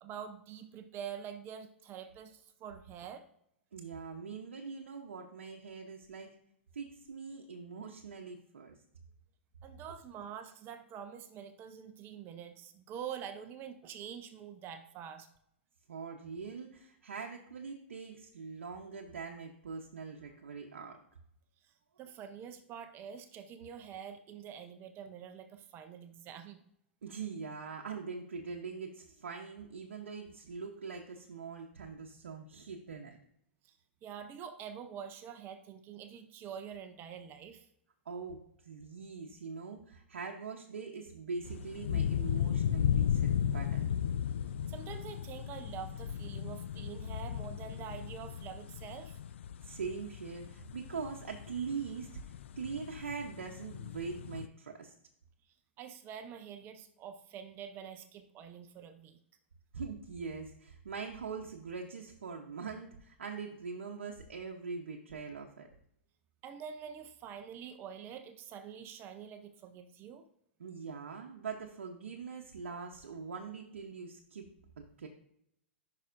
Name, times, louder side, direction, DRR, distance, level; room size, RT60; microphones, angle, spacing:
voice 1, 0.0-3.3 9.6-15.3 22.0-26.6 33.6-33.7 34.0-37.7 44.7-49.2 55.8-59.2 66.4-70.2, right 8 dB, 35° right, 8 dB, 0.6 m, -46 dB
voice 2, 3.7-6.4 6.7-8.8 15.9-21.0 27.0-33.2 38.1-43.9 49.6-54.9 59.7-65.7 70.6-74.5 75.0-75.1, right 5 dB, 85° right, 1 dB, 0.8 m, -42 dB
sound 1, 41.4-54.5, left 9 dB, 75° left, 0.4 m, -35 dB
9.0 x 5.8 x 2.6 m, 0.74 s
hypercardioid pair, 120°, 7 cm